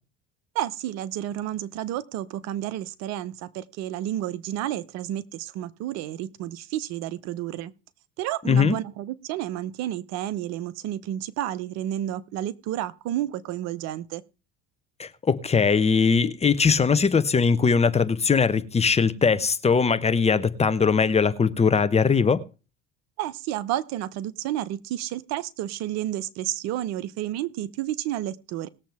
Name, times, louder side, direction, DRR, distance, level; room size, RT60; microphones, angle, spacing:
voice 1, 0.5-7.7 8.2-14.2 23.2-28.7, right 12 dB, 65° right, 1.0 m, -31 dB
voice 2, 8.4-8.8 15.0-22.4, left 5 dB, 20° left, 1.2 m, -21 dB
19.5 x 7.4 x 3.6 m
supercardioid pair, 90°, 29 cm